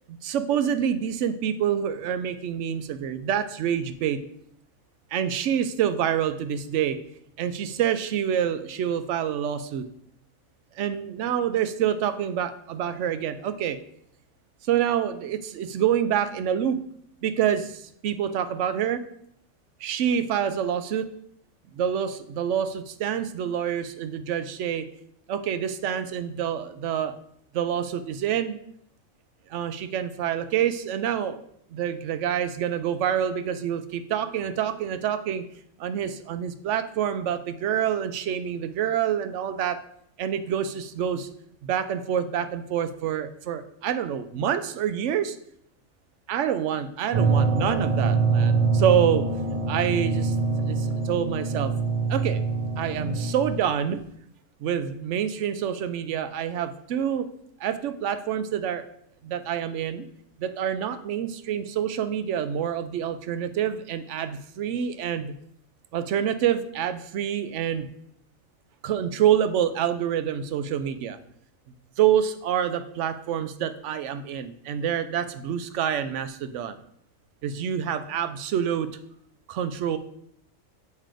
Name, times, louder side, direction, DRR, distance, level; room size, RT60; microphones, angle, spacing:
voice 1, 0.1-4.2 5.1-7.0 7.4-9.8 10.8-13.8 14.7-16.8 17.2-19.0 19.8-21.1 21.7-24.9 25.3-27.1 27.5-28.6 29.5-31.4 31.7-35.4 35.8-39.8 40.2-41.3 41.6-45.4 46.3-49.2 49.7-50.4 50.6-51.7 52.1-52.4 52.8-54.0 54.6-57.3 57.6-58.8 59.2-60.1 60.4-65.3 65.9-67.9 68.8-71.2 72.0-76.8 77.4-78.9 79.5-80.0, right 9 dB, 70° right, 10 dB, 0.8 m, -27 dB
sound 1, 47.1-53.9, right 4 dB, 45° right, 0.5 m, -24 dB
7.5 x 3.2 x 5.0 m, 0.69 s
omnidirectional pair, 1.4 m